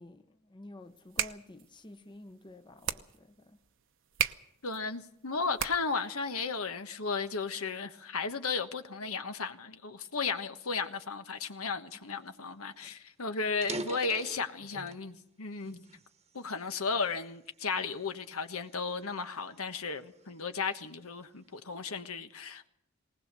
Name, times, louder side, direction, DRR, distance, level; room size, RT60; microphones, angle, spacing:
voice 1, 0.0-3.6 12.0-12.3, left 2 dB, 20° left, 0.8 m, -51 dB
sound 1, 0.9-6.1, right 10 dB, 60° right, 0.9 m, -38 dB
voice 2, 4.6-15.8 16.3-22.7, left 4 dB, 85° left, 1.3 m, -35 dB
sound 2, 12.4-12.5 12.8-13.0 13.5-15.1 15.6-16.9 17.5-17.7 18.4-20.4, right 2 dB, 30° right, 1.1 m, -43 dB
19.5 x 19.5 x 6.8 m
head